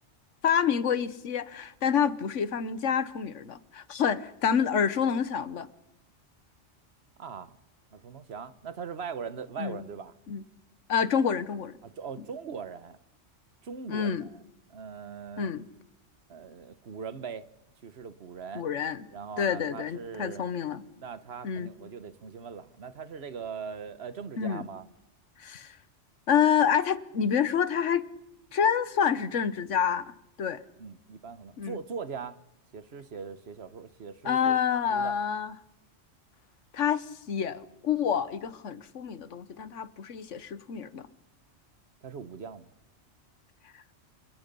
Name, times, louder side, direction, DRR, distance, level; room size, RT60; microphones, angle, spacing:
voice 1, 0.4-5.7 9.6-9.8 10.3-10.4 10.9-11.8 13.9-14.3 15.4-15.7 18.5-19.1 19.4-20.8 21.4-21.7 24.4-24.7 25.4-25.8 26.3-28.1 28.5-30.1 30.4-30.6 31.6-31.8 34.2-35.5 36.7-41.1 43.7-43.8, left 7 dB, 85° left, 1.4 m, -28 dB
voice 2, 7.2-7.6 7.9-10.1 11.8-13.0 13.6-14.3 14.7-15.5 16.3-17.5 17.8-18.7 19.1-20.5 21.0-24.9 30.8-32.4 32.7-34.6 34.9-35.1 42.0-42.7, right 6 dB, 60° right, 1.3 m, -40 dB
27.5 x 25.5 x 5.4 m
omnidirectional pair, 1.2 m